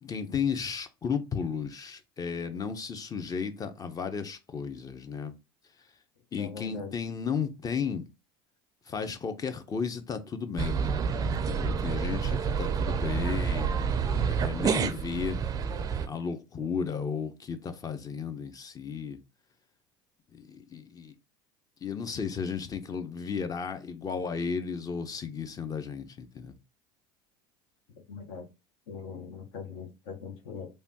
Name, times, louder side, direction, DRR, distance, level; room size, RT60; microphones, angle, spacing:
voice 1, 0.0-5.3 6.3-8.0 8.9-10.9 11.2-13.7 14.2-15.4 16.0-19.2 20.3-21.1 21.8-26.5, left 6 dB, 30° left, 0.6 m, -34 dB
voice 2, 6.4-6.9 28.1-28.5 28.9-30.7, left 5 dB, 75° left, 0.9 m, -41 dB
sound 1, 10.6-16.1, right 6 dB, 30° right, 0.4 m, -28 dB
3.3 x 2.3 x 2.7 m
hypercardioid pair, 85°, 13 cm